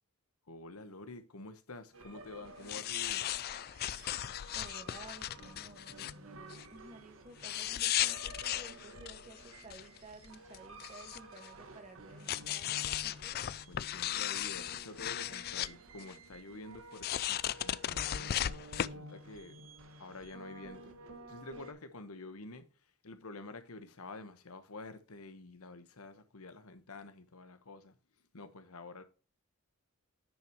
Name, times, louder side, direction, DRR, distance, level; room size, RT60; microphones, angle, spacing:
voice 1, 0.5-3.3 13.7-18.3 18.8-19.7 20.0-21.0 21.3-22.7 23.0-27.9 28.3-29.0, left 2 dB, 75° left, 1.1 m, -49 dB
sound 1, 1.9-21.7, right 2 dB, 65° right, 1.4 m, -52 dB
sound 2, 2.6-6.1 6.5-6.6 7.4-10.0 10.2-11.5 12.3-15.7 16.0-16.1 17.0-18.9, left 12 dB, 45° left, 0.3 m, -36 dB
voice 2, 4.5-13.4, right 2 dB, 30° right, 1.6 m, -54 dB
10.0 x 5.9 x 3.0 m
head